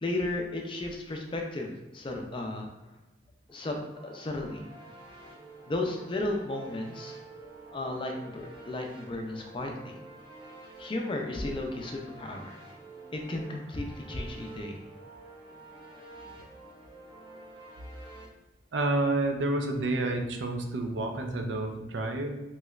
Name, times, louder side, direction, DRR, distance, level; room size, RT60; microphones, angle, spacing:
voice 1, 0.0-2.7 3.5-4.6 5.7-7.2 7.7-10.0 10.8-12.5 13.1-14.7, left 2 dB, 30° left, 2 dB, 0.4 m, -34 dB
sound 1, 3.5-18.3, right 3 dB, 30° right, 0.9 m, -49 dB
voice 2, 18.7-22.4, right 2 dB, 85° right, 4 dB, 0.5 m, -29 dB
3.1 x 3.0 x 2.4 m, 1.1 s
head